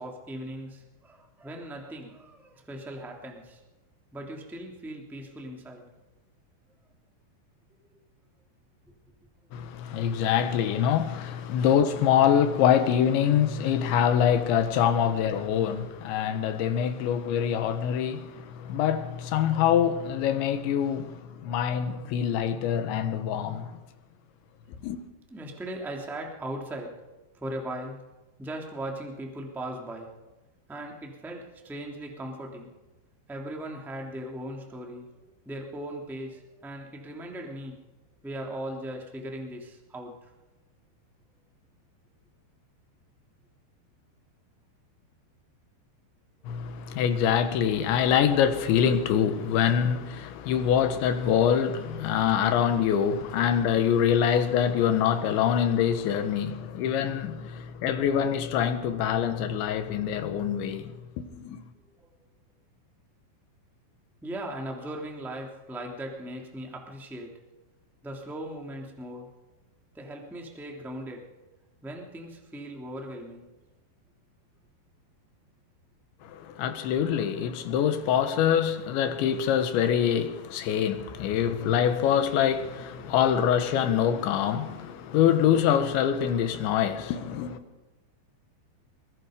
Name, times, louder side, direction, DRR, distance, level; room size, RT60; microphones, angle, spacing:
voice 1, 0.0-3.6 4.1-5.9 7.9-8.0 15.7-15.9 25.3-27.0 27.3-28.0 28.4-30.1 30.7-32.7 33.3-35.1 35.4-37.8 38.2-40.3 46.4-46.7 56.3-56.5 57.5-57.9 62.0-62.3 64.2-67.4 68.0-69.3 69.9-71.3 71.8-73.5, right 1 dB, ahead, 1.9 m, -39 dB
voice 2, 9.5-23.7 24.8-25.0 46.5-61.6 76.2-87.6, left 9 dB, 80° left, 3.7 m, -25 dB
23.0 x 21.5 x 5.2 m
omnidirectional pair, 5.3 m